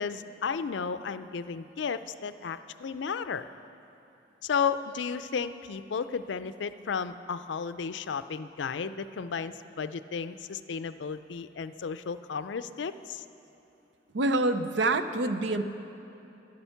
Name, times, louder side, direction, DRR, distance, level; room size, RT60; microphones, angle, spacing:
voice 1, 0.0-3.4 4.4-13.2, left 6 dB, 75° left, 12 dB, 0.4 m, -33 dB
voice 2, 14.1-15.6, right 2 dB, 75° right, 10 dB, 0.6 m, -26 dB
12.5 x 11.5 x 5.7 m, 3.0 s
head